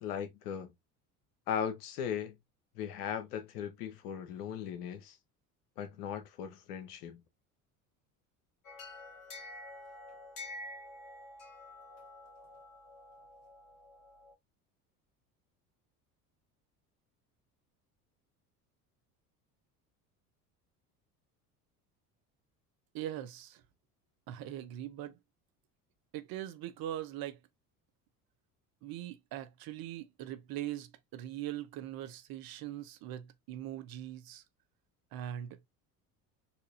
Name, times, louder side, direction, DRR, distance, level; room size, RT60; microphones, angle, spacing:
voice 1, 0.0-0.7 1.5-2.4 2.7-5.2 5.8-7.2, left 8 dB, 80° left, 1.0 m, -38 dB
sound 1, 8.6-14.3, left 2 dB, 45° left, 2.1 m, -49 dB
voice 2, 22.9-23.6 24.3-25.2 26.1-27.4 28.8-34.4 35.1-35.7, right 12 dB, 50° right, 0.7 m, -41 dB
4.3 x 2.6 x 2.5 m
hypercardioid pair, 70°, 46 cm